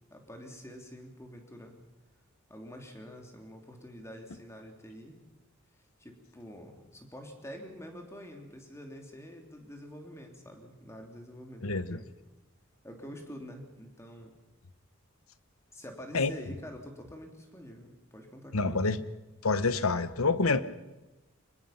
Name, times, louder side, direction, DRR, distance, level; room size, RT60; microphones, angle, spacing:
voice 1, 0.1-1.8 2.5-5.2 6.0-12.1 12.8-14.3 15.7-18.8, equal, 15° left, 3 dB, 3.2 m, -47 dB
voice 2, 11.6-12.0 16.1-16.3 18.5-19.0 19.4-20.6, left 3 dB, 90° left, 14 dB, 1.1 m, -27 dB
25.0 x 21.0 x 5.9 m, 1.1 s
head